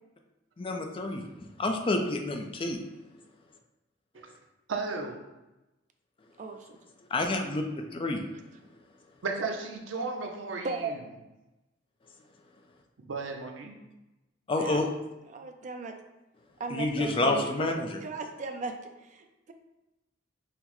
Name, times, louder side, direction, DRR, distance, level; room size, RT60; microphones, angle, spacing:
voice 1, 0.6-1.2 1.6-2.8 7.1-8.2 14.5-14.9 16.7-18.0, left 2 dB, 25° left, 3 dB, 0.4 m, -29 dB
voice 2, 4.7-5.2 9.2-11.0 13.1-13.8, right 3 dB, 85° right, 3 dB, 0.6 m, -35 dB
voice 3, 15.3-15.9 16.6-17.7 18.0-18.7 19.1-19.5, right 4 dB, 40° right, 5 dB, 0.4 m, -36 dB
5.7 x 2.0 x 3.0 m, 1.0 s
head